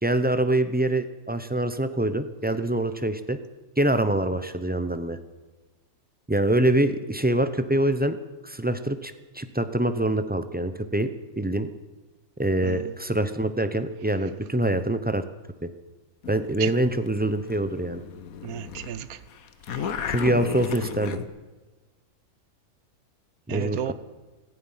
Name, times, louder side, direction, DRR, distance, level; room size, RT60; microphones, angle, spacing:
voice 1, 0.0-3.4 3.8-5.2 6.3-8.2 8.4-11.1 11.4-11.7 12.4-15.2 15.6-15.7 16.3-18.0 20.1-21.2 23.5-23.9, right 1 dB, 10° right, 0.4 m, -25 dB
voice 2, 12.6-12.9 16.6-16.7 18.4-19.2 19.7-20.1 23.5-23.9, right 10 dB, 75° right, 1.3 m, -33 dB
sound 1, 16.2-18.9 19.2-21.3, left 7 dB, 70° left, 1.4 m, -34 dB
16.5 x 15.5 x 5.7 m
omnidirectional pair, 1.6 m